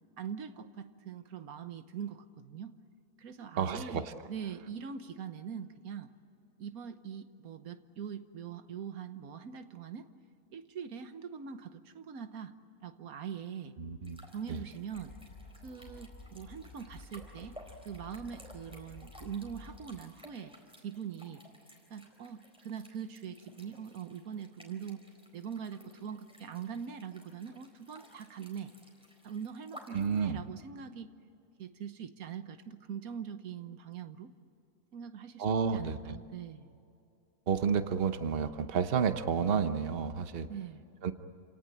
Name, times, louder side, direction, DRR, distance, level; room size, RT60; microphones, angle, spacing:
voice 1, 0.2-2.8 3.2-6.1 6.6-10.1 10.5-12.5 12.8-13.7 14.3-15.2 15.6-17.6 17.8-20.5 20.8-21.4 21.9-25.0 25.3-28.7 29.2-31.1 31.6-34.3 34.9-35.5 35.7-36.7 40.5-40.8, right 7 dB, 80° right, 10 dB, 1.5 m, -42 dB
voice 2, 3.6-4.1 13.8-14.2 14.5-14.6 29.9-30.4 35.4-36.2 37.5-40.5 41.0-41.1, right 6 dB, 45° right, 10 dB, 1.1 m, -31 dB
sound 1, 14.0-30.2, equal, 5° right, 4.1 m, -56 dB
sound 2, 14.9-20.0, left 3 dB, 60° left, 2.6 m, -52 dB
27.5 x 18.0 x 9.1 m, 2.6 s
omnidirectional pair, 1.5 m